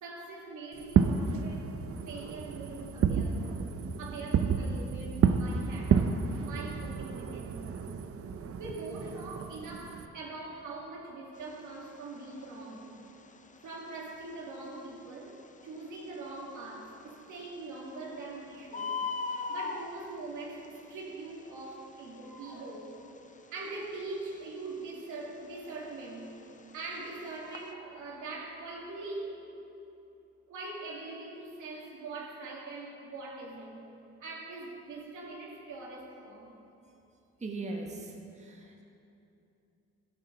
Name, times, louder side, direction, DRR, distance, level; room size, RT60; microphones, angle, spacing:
voice 1, 0.0-1.7 2.1-3.4 4.0-7.9 8.6-12.9 13.6-15.4 15.6-18.9 19.3-22.9 23.5-26.3 26.7-29.4 30.5-33.8 34.2-36.5, right 3 dB, 75° right, -3 dB, 2.6 m, -42 dB
Fireworks, 0.8-10.1, right 6 dB, 50° right, 0.6 m, -30 dB
Bird, 11.3-27.7, left 4 dB, 25° left, 0.7 m, -43 dB
voice 2, 37.4-38.8, right 3 dB, 25° right, 1 dB, 1.2 m, -39 dB
12.5 x 12.0 x 4.0 m, 2.8 s
cardioid pair, 90°, 30 cm